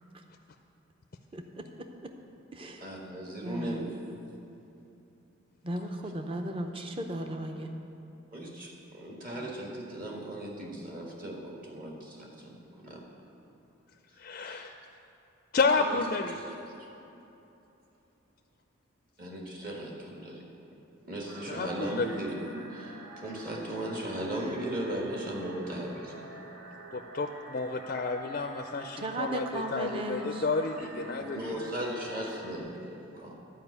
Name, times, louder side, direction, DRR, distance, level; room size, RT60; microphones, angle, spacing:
voice 1, 1.3-2.1 2.5-2.9 3.4-3.9 5.6-7.8 29.0-30.5, right 1 dB, 25° right, 4 dB, 0.6 m, -36 dB
voice 2, 2.8-3.9 8.3-13.0 14.4-14.7 15.8-16.0 16.3-16.5 19.2-20.4 21.1-26.1 31.2-33.3, right 1 dB, 40° right, -1 dB, 1.5 m, -37 dB
voice 3, 14.2-14.7 15.5-16.4 21.5-22.2 26.9-31.6, left 3 dB, 40° left, 5 dB, 0.4 m, -31 dB
sound 1, 21.3-32.6, right 1 dB, 85° right, 1.4 m, -48 dB
11.0 x 5.1 x 8.0 m, 2.9 s
head